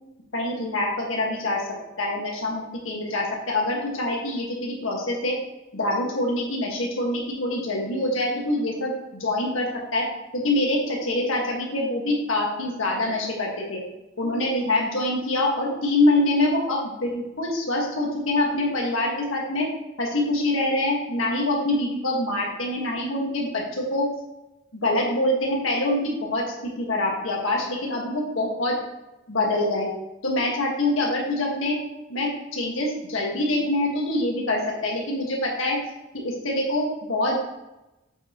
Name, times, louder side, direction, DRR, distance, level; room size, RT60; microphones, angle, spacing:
voice 1, 0.3-1.7 2.0-5.3 5.7-10.1 10.3-13.8 14.2-19.7 20.0-24.1 24.7-28.7 29.3-29.9 30.2-31.8 32.1-35.8 36.1-37.5, left 1 dB, 90° left, -2 dB, 1.7 m, -25 dB
7.5 x 4.8 x 3.0 m, 0.96 s
head